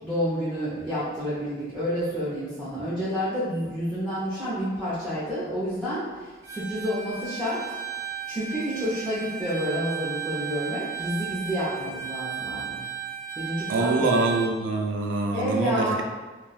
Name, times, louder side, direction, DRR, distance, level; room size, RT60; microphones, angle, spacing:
voice 1, 0.0-7.6 8.3-12.8 13.4-14.2 15.3-16.0, equal, ahead, -11 dB, 0.7 m, -29 dB
Bowed string instrument, 6.4-14.5, right 9 dB, 35° right, 0.6 m, -35 dB
voice 2, 13.7-16.0, right 3 dB, 90° right, 3 dB, 0.4 m, -25 dB
2.4 x 2.3 x 4.0 m, 1.3 s
head